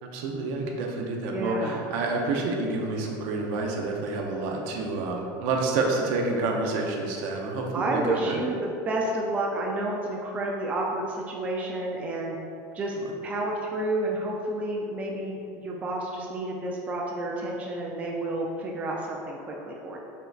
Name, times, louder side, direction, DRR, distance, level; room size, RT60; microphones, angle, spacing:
voice 1, 0.0-8.4, right 3 dB, 65° right, 1 dB, 0.7 m, -28 dB
voice 2, 1.3-1.8 7.7-12.4 12.7-13.0 13.2-20.0, right 1 dB, 15° right, -2 dB, 0.3 m, -30 dB
5.6 x 3.8 x 2.4 m, 2.6 s
cardioid pair, 165°, 10 cm